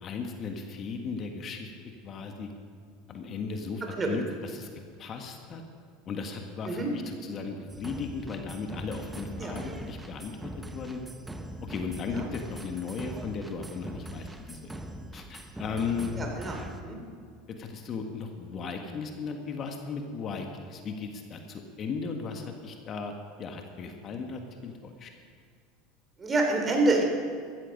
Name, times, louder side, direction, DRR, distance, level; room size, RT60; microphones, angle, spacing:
voice 1, 0.0-1.7 2.0-2.5 3.1-4.7 5.0-5.6 6.1-11.0 11.6-14.8 15.1-16.1 17.5-23.1 23.4-25.1, left 5 dB, 40° left, 4 dB, 1.7 m, -36 dB
sound 1, 7.7-16.8, right 1 dB, 10° right, 1.2 m, -41 dB
voice 2, 16.1-16.6 16.8-17.0 26.2-27.0, right 2 dB, 25° right, 2 dB, 3.4 m, -27 dB
14.5 x 14.0 x 5.4 m, 2.2 s
hypercardioid pair, 90°, 0 cm